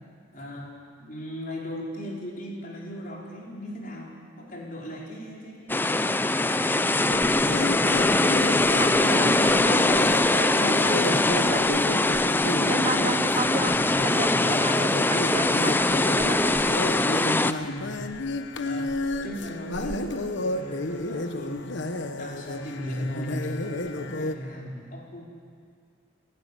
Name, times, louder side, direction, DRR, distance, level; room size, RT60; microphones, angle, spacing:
voice 1, 0.3-4.1 4.4-6.2 6.6-7.5 17.3-18.1 18.6-19.0 19.2-25.2, equal, 45° left, -2 dB, 4.8 m, -37 dB
sound 1, 5.7-17.5, left 2 dB, 10° left, 0.5 m, -22 dB
sound 2, 7.1-24.4, left 2 dB, 60° left, 1.1 m, -32 dB
voice 2, 8.8-16.6, right 3 dB, 30° right, 10 dB, 0.8 m, -33 dB
29.5 x 11.5 x 10.0 m, 2.1 s
head